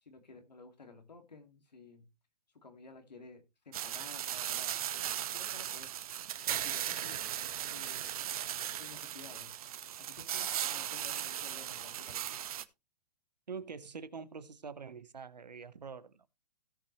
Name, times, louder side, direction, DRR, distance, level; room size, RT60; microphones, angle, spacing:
voice 1, 0.0-2.0 2.5-5.9 6.5-7.3 7.7-8.1 8.8-9.5 10.0-12.4, left 4 dB, 90° left, 2.6 m, -54 dB
sound 1, 3.7-12.6, right 10 dB, 60° right, 0.8 m, -37 dB
voice 2, 13.5-16.3, right 5 dB, 90° right, 1.1 m, -45 dB
17.0 x 5.8 x 3.2 m
hypercardioid pair, 125°, 21 cm